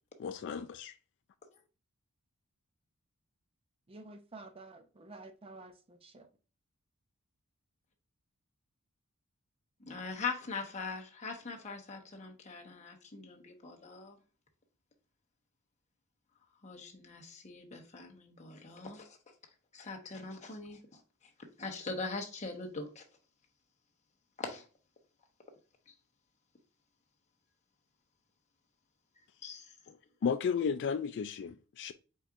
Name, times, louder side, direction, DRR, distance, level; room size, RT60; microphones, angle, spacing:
voice 1, 0.2-0.9 30.2-31.9, left 6 dB, 55° left, 0.3 m, -33 dB
voice 2, 3.9-6.3, right 2 dB, 25° right, 0.5 m, -51 dB
voice 3, 9.9-14.2 16.6-19.2 19.7-20.8 21.6-23.0 24.4-24.6 29.4-29.6, left 4 dB, 30° left, 1.0 m, -41 dB
4.6 x 4.3 x 2.5 m
head